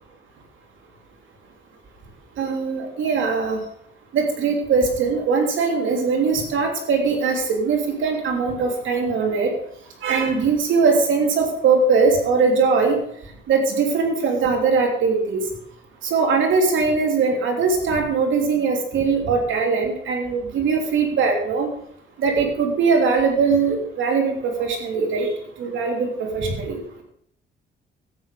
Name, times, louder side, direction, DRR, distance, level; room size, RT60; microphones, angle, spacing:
voice 1, 2.4-3.6 4.1-9.5 10.0-13.0 13.5-15.4 16.0-21.7 22.2-25.3 25.6-27.0, right 4 dB, 75° right, 2 dB, 3.2 m, -21 dB
12.5 x 9.0 x 5.1 m, 0.67 s
cardioid pair, 90°, 20 cm